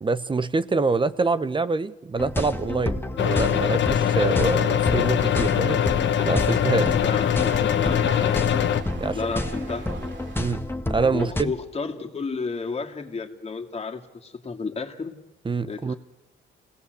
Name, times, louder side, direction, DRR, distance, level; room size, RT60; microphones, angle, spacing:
voice 1, 0.0-5.8 6.2-7.0 9.0-9.2 10.4-10.6 10.9-11.5 15.4-15.9, right 4 dB, 25° right, 13 dB, 1.0 m, -25 dB
sound 1, 2.2-11.4, left 1 dB, 10° left, 1.7 m, -30 dB
sound 2, 3.2-8.8, left 10 dB, 65° left, 1.3 m, -22 dB
sound 3, 4.1-10.5, right 5 dB, 65° right, 3.1 m, -43 dB
voice 2, 7.0-8.5 9.1-9.9 11.1-15.2 15.6-16.0, left 4 dB, 30° left, 2 dB, 2.6 m, -32 dB
27.5 x 18.5 x 8.2 m, 0.99 s
cardioid pair, 90°, 20 cm